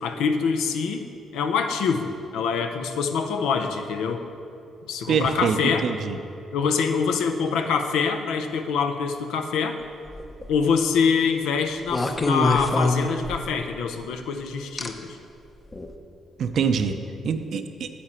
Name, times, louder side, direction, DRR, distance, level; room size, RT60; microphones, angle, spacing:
voice 1, 0.0-1.0 1.3-4.2 4.9-5.8 6.5-9.8 10.5-15.2, left 5 dB, 85° left, 6 dB, 0.6 m, -25 dB
voice 2, 5.1-5.6 5.8-6.2 16.4-17.0 17.2-17.9, right 6 dB, 65° right, 8 dB, 0.6 m, -24 dB
sound 1, 10.1-10.5 11.9-13.7 14.8-14.9 15.7-15.9, left 2 dB, 25° left, 0.7 m, -24 dB
8.4 x 7.6 x 4.4 m, 2.6 s
cardioid pair, 90°, 0 cm